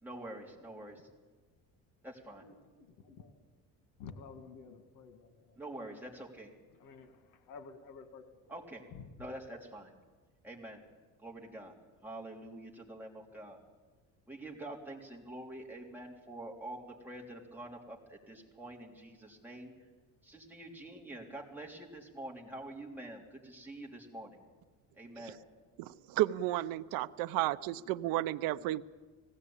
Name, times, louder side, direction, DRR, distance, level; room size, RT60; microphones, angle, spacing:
voice 1, 0.0-1.1 2.0-2.4 5.6-6.5 8.5-8.8 9.2-9.9 10.4-10.8 11.2-11.8 12.0-13.6 14.3-19.9 20.2-24.4 24.9-25.4, right 1 dB, 5° right, -1 dB, 3.3 m, -46 dB
voice 2, 0.7-1.0 2.4-3.4 4.0-5.6 6.7-8.6 8.9-9.1, left 5 dB, 75° left, 8 dB, 2.2 m, -52 dB
voice 3, 25.8-28.8, right 15 dB, 85° right, 15 dB, 0.7 m, -32 dB
19.5 x 16.5 x 8.7 m, 1.3 s
cardioid pair, 140°, 34 cm